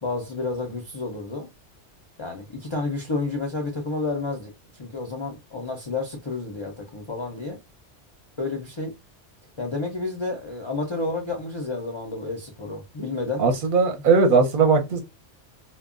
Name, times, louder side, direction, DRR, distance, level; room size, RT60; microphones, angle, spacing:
voice 1, 0.0-1.5 2.2-7.6 8.4-8.9 9.6-13.5, left 3 dB, 35° left, 0.5 m, -30 dB
voice 2, 13.4-15.0, right 4 dB, 50° right, 0.8 m, -19 dB
2.3 x 2.2 x 3.6 m
omnidirectional pair, 1.2 m